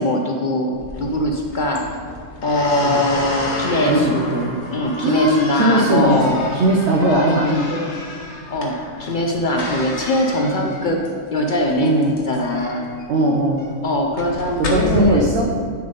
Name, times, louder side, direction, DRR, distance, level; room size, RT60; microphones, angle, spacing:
voice 1, 0.0-1.9 2.4-4.3 4.7-6.4 7.1-7.4 8.5-12.0 12.3-12.9 13.8-15.3, left 1 dB, 70° left, 1 dB, 0.4 m, -21 dB
sound 1, 0.7-15.0, left 1 dB, 50° left, 1.2 m, -31 dB
voice 2, 3.9-4.5 5.0-7.8 10.4-10.7 11.8-12.1 13.1-13.6 14.6-15.5, right 1 dB, 55° right, 0 dB, 0.9 m, -19 dB
10.0 x 4.0 x 5.1 m, 2.1 s
omnidirectional pair, 1.6 m